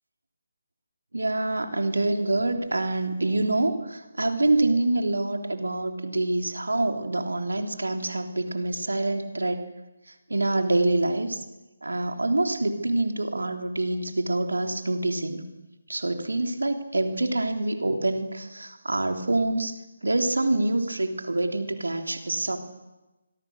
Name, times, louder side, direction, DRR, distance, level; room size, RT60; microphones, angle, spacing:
voice 1, 1.1-3.7 4.2-9.6 10.3-11.4 11.8-15.4 15.9-19.7 20.0-22.6, right 2 dB, 75° right, 5 dB, 3.4 m, -26 dB
26.0 x 22.5 x 6.5 m, 1.1 s
figure-of-eight pair, 150°, 0 cm